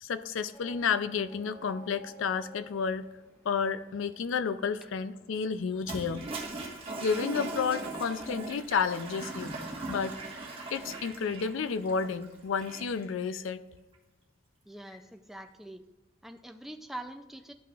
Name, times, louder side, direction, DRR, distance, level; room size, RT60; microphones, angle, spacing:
voice 1, 0.0-3.1 3.4-6.2 7.0-9.6 9.9-10.2 10.7-13.6, left 6 dB, 75° left, 13 dB, 0.4 m, -31 dB
sound 1, 0.5-7.9, equal, 15° left, 1.3 m, -56 dB
Toilet flush, 5.8-13.0, right 2 dB, 30° right, 1.4 m, -39 dB
voice 2, 14.7-15.8 16.2-17.5, right 1 dB, ahead, 6 dB, 0.4 m, -44 dB
12.5 x 5.8 x 2.4 m, 1.1 s
head